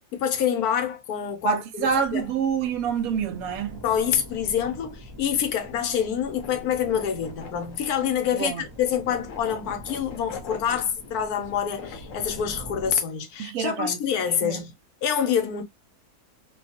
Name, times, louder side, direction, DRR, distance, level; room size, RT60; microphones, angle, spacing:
voice 1, 0.1-2.3 3.8-14.7 15.0-15.6, left 8 dB, 90° left, 1.2 m, -26 dB
voice 2, 1.4-3.8 8.3-8.6 13.4-14.0 14.4-14.6, right 7 dB, 75° right, 1.0 m, -27 dB
sound 1, 1.8-12.9, right 1 dB, 15° right, 0.7 m, -44 dB
sound 2, 5.5-12.3, left 8 dB, 65° left, 1.0 m, -44 dB
2.7 x 2.3 x 2.7 m
omnidirectional pair, 1.6 m